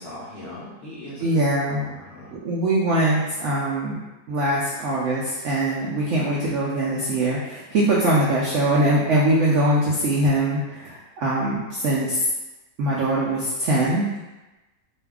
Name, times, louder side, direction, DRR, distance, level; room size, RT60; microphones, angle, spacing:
voice 1, 0.0-1.4 1.7-2.3, left 1 dB, 75° left, -9 dB, 0.5 m, -39 dB
voice 2, 1.2-1.8 2.3-4.0 4.3-12.2 12.8-14.2, right 1 dB, 90° right, -5 dB, 0.6 m, -22 dB
2.6 x 2.4 x 3.4 m, 1.1 s
omnidirectional pair, 1.9 m